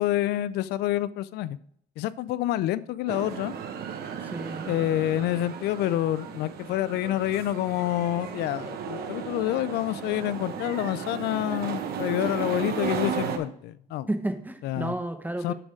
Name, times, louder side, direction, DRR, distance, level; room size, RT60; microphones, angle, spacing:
voice 1, 0.0-1.6 2.0-3.5 4.7-14.1 14.6-14.9 15.4-15.5, left 14 dB, 75° left, 17 dB, 0.4 m, -28 dB
sound 1, 3.1-13.4, right 6 dB, 70° right, 1.2 m, -34 dB
voice 2, 4.2-4.7 14.1-15.5, right 1 dB, 10° right, 7 dB, 0.8 m, -31 dB
7.5 x 6.3 x 5.0 m, 0.65 s
cardioid pair, 110°, 17 cm